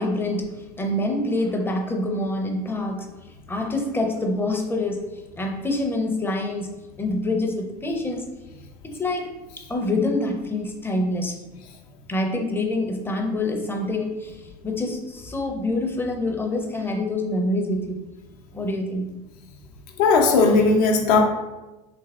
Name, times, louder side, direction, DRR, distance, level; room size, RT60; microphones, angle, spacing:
voice 1, 0.0-8.2 8.8-9.3 9.7-11.4 12.1-18.0 18.5-19.2, left 2 dB, 10° left, 2 dB, 0.5 m, -26 dB
voice 2, 20.0-21.2, left 4 dB, 70° left, 2 dB, 0.7 m, -17 dB
3.2 x 3.2 x 2.3 m, 1.1 s
hypercardioid pair, 80°, 21 cm